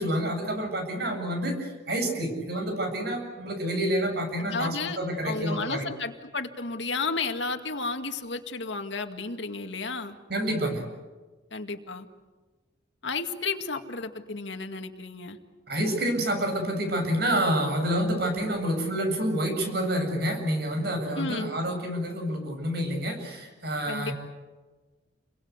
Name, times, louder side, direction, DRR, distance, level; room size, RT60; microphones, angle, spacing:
voice 1, 0.0-5.9 10.3-10.8 15.7-24.1, equal, 60° right, 4 dB, 7.6 m, -28 dB
voice 2, 4.4-5.0 5.2-10.2 11.5-12.1 13.0-15.4 21.1-21.5 23.9-24.1, left 4 dB, 75° left, 6 dB, 2.2 m, -32 dB
30.0 x 23.0 x 8.2 m, 1.3 s
head